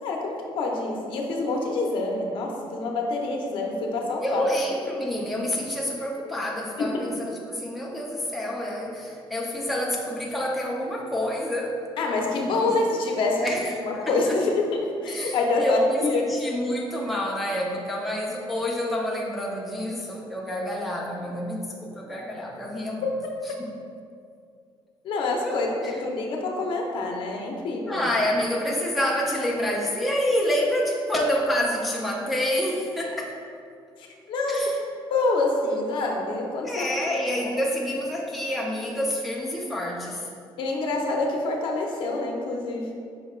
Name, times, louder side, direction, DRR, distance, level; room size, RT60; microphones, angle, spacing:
voice 1, 0.0-4.4 6.8-7.0 12.0-13.5 13.8-16.3 23.0-23.1 25.0-28.1 34.0-34.6 35.1-36.9 37.4-37.5 40.6-42.9, left 3 dB, 60° left, 0 dB, 0.6 m, -26 dB
voice 2, 4.2-11.8 12.5-12.7 13.4-14.4 15.1-23.1 23.5-23.7 25.4-25.6 25.8-26.0 27.9-33.4 34.5-34.8 36.6-40.3, left 1 dB, ahead, -3 dB, 0.4 m, -28 dB
5.5 x 2.2 x 4.2 m, 2.4 s
cardioid pair, 175°, 10 cm